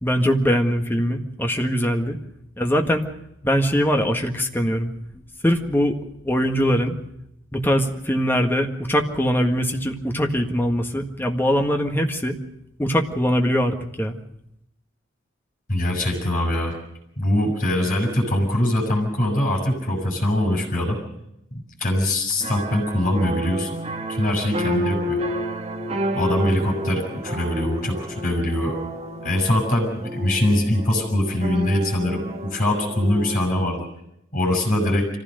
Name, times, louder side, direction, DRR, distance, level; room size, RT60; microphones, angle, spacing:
voice 1, 0.0-2.2 2.6-3.0 3.4-6.0 6.2-7.0 7.5-12.4 12.8-14.2, equal, 10° left, 3 dB, 1.7 m, -22 dB
voice 2, 15.7-16.8 17.2-21.0 21.8-23.7 24.1-25.2 26.1-28.8 29.2-33.9 34.3-35.1, left 1 dB, 40° left, 2 dB, 7.3 m, -22 dB
Lola in the Forest, 22.4-33.7, equal, 35° right, 2.1 m, -30 dB
25.0 x 15.5 x 6.6 m, 0.80 s
head